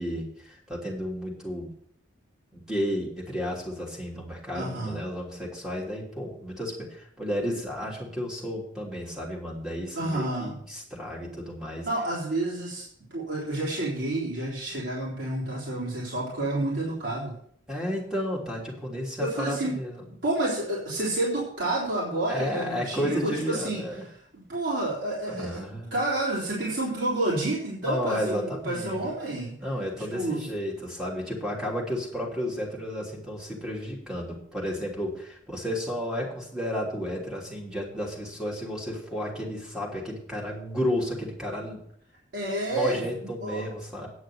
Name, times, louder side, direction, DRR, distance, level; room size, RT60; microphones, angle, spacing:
voice 1, 0.0-1.7 2.5-11.9 17.7-20.1 22.3-24.0 25.3-25.9 27.8-29.1 29.6-41.9 42.7-44.1, equal, 5° right, -3 dB, 3.1 m, -32 dB
voice 2, 4.5-5.0 10.0-10.5 11.9-12.8 13.1-17.3 19.2-19.7 20.2-23.8 24.3-29.5 30.1-30.4 42.3-43.7, right 2 dB, 65° right, -7 dB, 4.0 m, -29 dB
9.9 x 6.4 x 7.9 m, 0.67 s
head